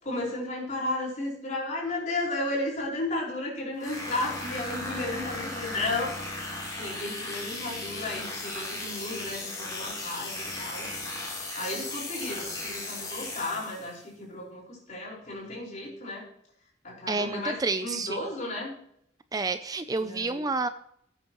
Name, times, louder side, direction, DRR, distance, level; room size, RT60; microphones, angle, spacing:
voice 1, 0.0-6.1 6.8-10.9 11.5-16.3 16.8-18.7 20.0-20.4, left 2 dB, 40° left, -3 dB, 4.8 m, -33 dB
sound 1, 3.8-14.0, left 2 dB, 20° left, 3.4 m, -36 dB
voice 2, 17.1-18.2 19.3-20.7, right 3 dB, 20° right, 11 dB, 0.4 m, -29 dB
16.5 x 8.9 x 3.0 m, 0.70 s
head